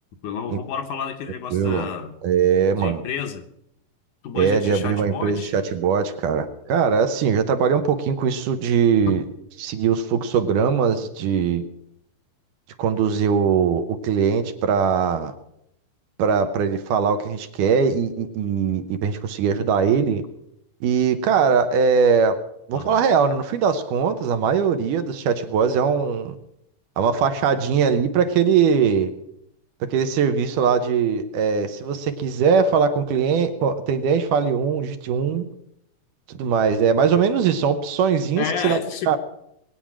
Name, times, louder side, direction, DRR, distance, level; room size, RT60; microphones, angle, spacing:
voice 1, 0.2-2.1 2.8-3.5 4.2-5.5 22.7-23.1 38.4-39.2, left 7 dB, 70° left, 2.3 m, -30 dB
voice 2, 1.5-1.9 2.2-3.0 4.3-9.3 9.6-11.6 12.8-15.3 16.2-20.2 20.8-22.4 22.7-26.3 27.0-29.1 29.8-35.4 36.4-38.8 39.1-39.2, right 6 dB, 75° right, 2.4 m, -21 dB
20.5 x 8.8 x 6.1 m
omnidirectional pair, 3.9 m